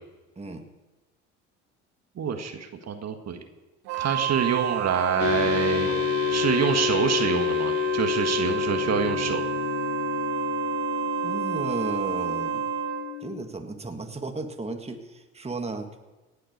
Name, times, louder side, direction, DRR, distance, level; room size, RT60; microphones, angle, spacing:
voice 1, 0.4-0.7 11.2-12.7 13.2-16.0, right 3 dB, 15° right, 5 dB, 1.7 m, -34 dB
voice 2, 2.2-3.4 4.0-5.9 6.3-9.4, right 7 dB, 45° right, 5 dB, 1.7 m, -26 dB
Wind instrument woodwind instrument, 3.8-13.1, right 11 dB, 70° right, 1.5 m, -31 dB
sound 1, 5.2-13.5, left 13 dB, 80° left, 1.3 m, -29 dB
18.5 x 7.7 x 6.7 m, 1.2 s
hypercardioid pair, 65°, 36 cm